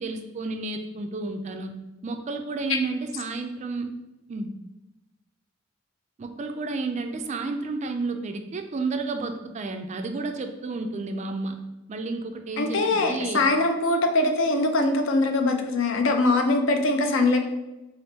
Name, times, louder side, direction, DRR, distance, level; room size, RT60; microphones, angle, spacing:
voice 1, 0.0-1.7 2.0-3.9 4.3-4.5 6.2-11.6 11.9-13.4, right 3 dB, 35° right, 6 dB, 0.3 m, -31 dB
voice 2, 12.6-17.4, left 2 dB, 65° left, 5 dB, 0.5 m, -22 dB
3.5 x 2.4 x 4.0 m, 1.0 s
head